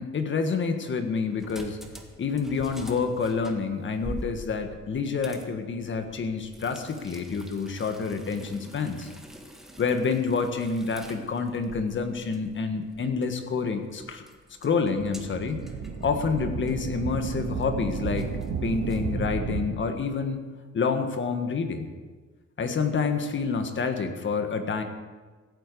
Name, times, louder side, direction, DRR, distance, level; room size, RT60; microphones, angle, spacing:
voice 1, 0.0-1.8 2.2-9.1 9.8-14.2 14.6-15.6 16.0-18.3 18.6-20.4 20.7-21.9 22.6-24.8, left 5 dB, 40° left, 7 dB, 1.6 m, -28 dB
sound 1, 1.3-19.1, right 1 dB, ahead, 1.6 m, -46 dB
sound 2, 14.9-19.6, right 5 dB, 60° right, 2.2 m, -32 dB
16.0 x 8.9 x 8.4 m, 1.4 s
cardioid pair, 150°, 29 cm